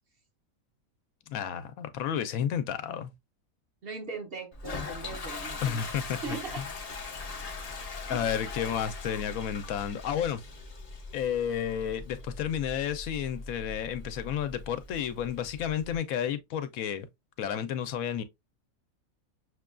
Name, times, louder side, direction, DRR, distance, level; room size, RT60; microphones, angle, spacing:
voice 1, 1.3-3.1 5.6-6.6 8.1-10.4 11.1-17.1 17.4-18.2, left 9 dB, 80° left, 1.0 m, -31 dB
voice 2, 3.8-5.8 6.2-6.6 8.1-8.3, right 4 dB, 50° right, 0.8 m, -39 dB
Toilet flush, 4.5-16.0, left 4 dB, 45° left, 0.5 m, -41 dB
6.2 x 2.2 x 2.3 m
omnidirectional pair, 1.5 m